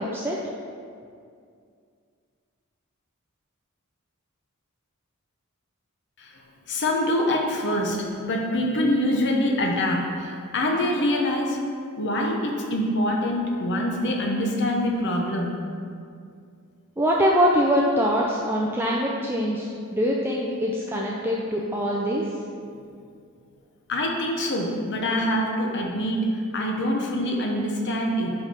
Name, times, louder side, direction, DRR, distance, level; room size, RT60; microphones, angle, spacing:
voice 1, 6.7-11.6 12.0-15.6 23.9-28.3, left 1 dB, 55° left, 1 dB, 0.8 m, -25 dB
voice 2, 17.0-22.3, equal, 10° right, -3 dB, 0.4 m, -23 dB
5.1 x 5.1 x 5.6 m, 2.3 s
head